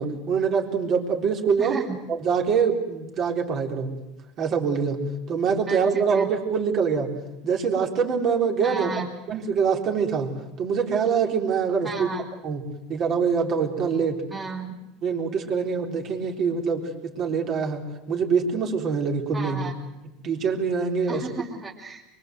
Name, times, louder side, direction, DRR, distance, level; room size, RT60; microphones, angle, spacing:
voice 1, 0.0-1.7 2.2-3.9 4.4-5.0 5.3-7.1 7.4-8.9 9.3-10.3 10.6-12.1 12.4-14.2 15.0-19.6 20.2-21.2, right 6 dB, 40° right, 2 dB, 3.9 m, -24 dB
voice 2, 1.6-1.9 5.7-6.3 8.6-9.1 11.8-12.2 14.3-14.7 19.3-19.8 21.1-22.0, right 4 dB, 20° right, -4 dB, 3.4 m, -34 dB
24.5 x 23.5 x 7.9 m, 0.96 s
supercardioid pair, 130°, 0 cm